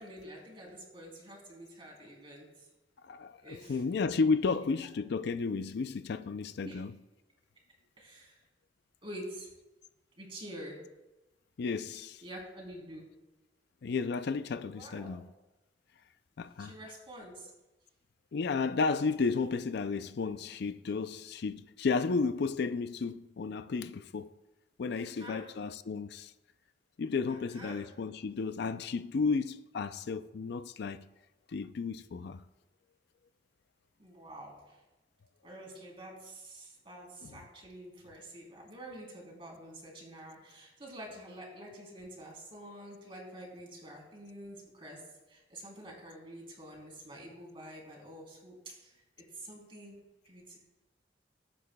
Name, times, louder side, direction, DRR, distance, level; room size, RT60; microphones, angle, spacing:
voice 1, 0.0-2.7 3.4-3.8 4.4-4.6 6.6-6.8 8.0-8.4 9.0-9.5 10.2-10.8 12.2-13.1 14.7-15.2 16.6-17.5 24.9-25.5 27.3-27.9 34.0-34.8 35.4-45.0 45.3-49.0 49.3-50.0 50.2-50.6, right 1 dB, 30° right, 3.3 m, -47 dB
voice 2, 3.0-7.0 11.6-12.2 13.8-15.3 16.4-16.7 18.3-24.3 24.8-26.3 27.0-31.1 31.5-32.4 37.2-37.4, left 4 dB, 65° left, 0.4 m, -33 dB
20.5 x 8.6 x 2.2 m
head